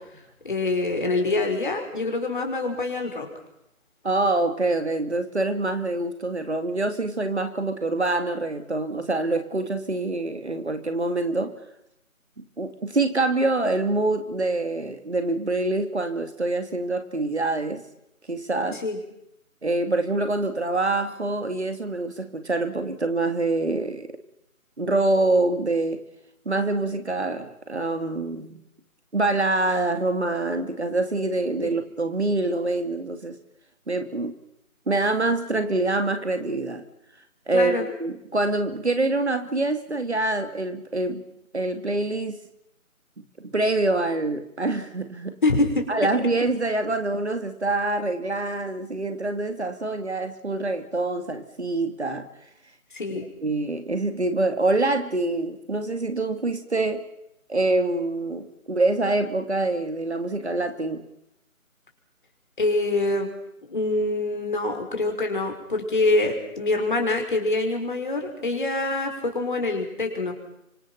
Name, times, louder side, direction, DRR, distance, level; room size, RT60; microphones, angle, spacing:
voice 1, 0.4-3.3 18.8-19.0 37.5-37.9 45.4-46.1 52.9-53.2 62.6-63.3 63.6-70.3, left 2 dB, 35° left, 4 dB, 5.5 m, -25 dB
voice 2, 4.0-11.5 12.4-17.8 18.3-18.8 19.6-24.1 24.8-26.0 26.5-28.6 29.1-33.4 33.9-34.3 34.9-36.8 37.5-41.2 41.5-42.4 43.4-45.3 45.9-52.3 53.1-57.1 57.5-61.0, right 2 dB, 50° right, 8 dB, 2.7 m, -25 dB
26.5 x 25.5 x 5.9 m, 0.81 s
figure-of-eight pair, 165°, 42 cm